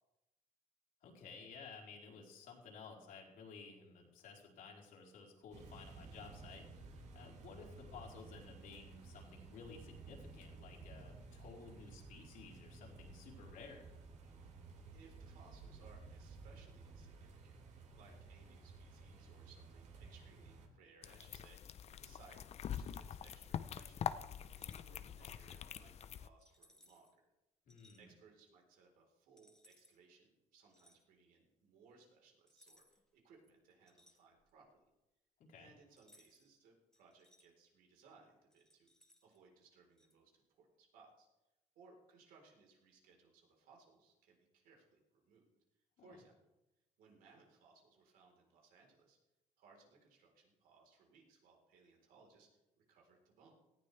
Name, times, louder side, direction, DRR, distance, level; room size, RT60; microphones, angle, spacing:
voice 1, 1.0-6.7 7.1-13.9 27.7-28.1 35.5-35.7 46.0-46.2, left 4 dB, 70° left, -2 dB, 4.3 m, -55 dB
sound 1, 5.5-20.7, right 3 dB, 55° right, 2.9 m, -55 dB
voice 2, 14.9-24.1 24.5-27.3 28.0-34.9 35.5-38.9 39.2-41.3 41.7-45.5 46.0-46.4 47.0-49.2 49.6-53.6, right 4 dB, 80° right, 0 dB, 4.3 m, -65 dB
sound 2, 21.0-26.3, left 8 dB, 45° left, 0.7 m, -44 dB
sound 3, 24.5-24.9 26.4-27.1 27.7-28.0 29.4-30.0 30.7-31.0 32.5-33.1 33.4-34.6 36.0-36.5 36.9-37.5 38.5-39.4 40.0-40.1, left 1 dB, 5° left, 2.0 m, -68 dB
18.5 x 15.0 x 3.4 m, 0.98 s
cardioid pair, 120°, 15 cm